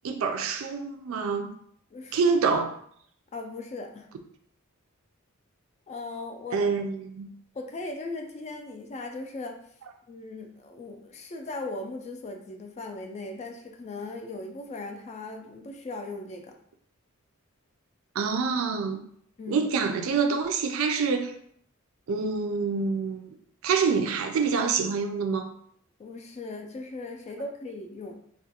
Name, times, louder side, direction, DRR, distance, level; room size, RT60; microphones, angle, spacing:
voice 1, 0.0-1.5 2.1-2.8 6.5-7.3 18.2-19.0 19.5-21.3 22.1-23.3 23.6-25.5, right 5 dB, 70° right, 5 dB, 0.3 m, -26 dB
voice 2, 1.9-2.3 3.3-4.1 5.9-6.7 7.5-9.6 10.1-16.5 19.4-19.7 26.0-28.2, left 2 dB, 30° left, 4 dB, 0.3 m, -38 dB
2.3 x 2.2 x 2.7 m, 0.65 s
head